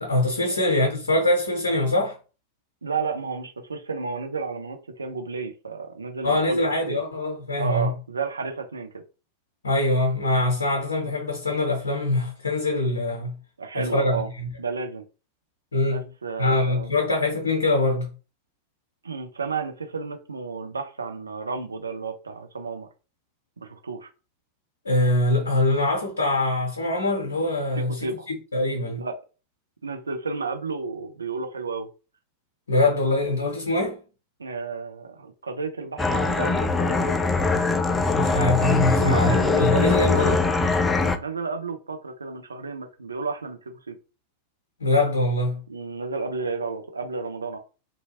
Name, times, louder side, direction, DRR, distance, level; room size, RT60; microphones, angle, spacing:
voice 1, 0.0-2.2 6.2-7.9 9.6-13.3 13.7-14.5 15.7-16.0 16.4-18.1 24.8-29.0 32.7-34.0 38.1-40.4 44.8-45.6, left 2 dB, 75° left, 0.7 m, -23 dB
voice 2, 2.8-7.0 7.6-9.0 13.6-14.3 14.6-15.0 15.8-16.9 19.0-22.9 23.6-24.1 27.7-28.3 29.0-29.2 29.8-31.9 34.4-37.2 39.0-40.4 41.0-44.0 45.7-47.6, right 4 dB, 75° right, 0.5 m, -32 dB
sound 1, 36.0-41.2, left 3 dB, 10° left, 0.3 m, -22 dB
2.7 x 2.2 x 2.8 m
figure-of-eight pair, 90°, 0 cm